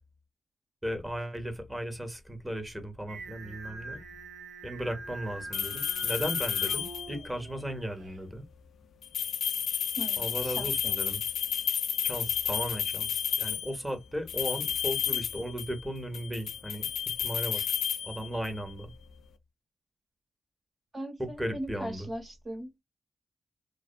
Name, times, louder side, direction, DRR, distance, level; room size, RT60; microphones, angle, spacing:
voice 1, 0.8-4.1 4.6-8.4 10.2-11.2 12.0-16.9 17.2-17.6 18.0-18.9 21.2-22.1, equal, 15° right, 1.2 m, -36 dB
Singing, 3.1-8.2, right 3 dB, 85° right, 0.7 m, -45 dB
sound 1, 5.5-7.3 9.0-13.8 14.3-15.8 16.1-18.6, left 8 dB, 85° left, 0.3 m, -31 dB
voice 2, 10.0-11.0 17.5-17.7 20.9-22.7, right 1 dB, 50° right, 1.6 m, -40 dB
2.6 x 2.1 x 2.5 m
supercardioid pair, 50°, 0 cm